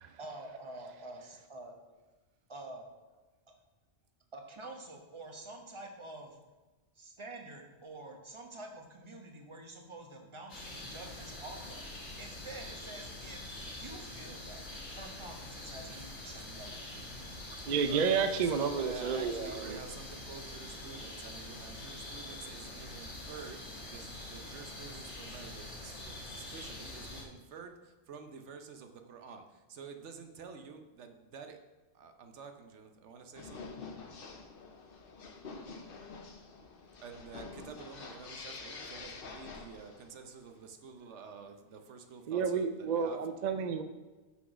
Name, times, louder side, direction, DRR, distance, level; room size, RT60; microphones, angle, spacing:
voice 1, 0.2-1.7 2.5-2.9 4.3-6.4 6.9-11.9 12.2-14.6 14.9-16.8, right 2 dB, 25° right, 2 dB, 1.2 m, -47 dB
sound 1, 10.5-27.2, left 2 dB, 75° left, 2.3 m, -45 dB
voice 2, 15.9-16.7 17.2-17.3 17.9-23.6 23.9-31.6 31.9-33.7 37.0-43.2, right 5 dB, 80° right, 6 dB, 1.1 m, -49 dB
voice 3, 17.4-19.8 42.3-43.8, right 6 dB, 55° right, 8 dB, 0.5 m, -31 dB
sound 2, 33.3-40.2, left 4 dB, 55° left, 1.0 m, -47 dB
6.1 x 5.8 x 6.0 m, 1.2 s
omnidirectional pair, 1.2 m